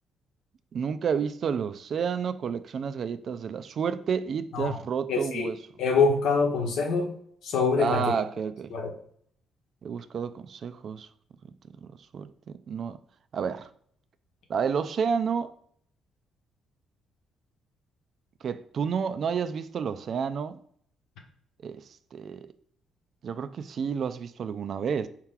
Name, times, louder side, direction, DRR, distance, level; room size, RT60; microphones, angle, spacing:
voice 1, 0.7-5.6 7.8-8.7 9.8-11.1 11.8-11.9 12.1-13.0 13.3-13.7 14.5-15.5 18.4-20.6 21.6-21.8 22.1-22.5 23.2-25.1, right 6 dB, 55° right, 0.3 m, -30 dB
voice 2, 5.1-5.5 5.8-7.1 7.4-8.1 8.7-8.9, left 4 dB, 85° left, 1.0 m, -25 dB
4.4 x 2.9 x 3.7 m
cardioid pair, 90°, 0 cm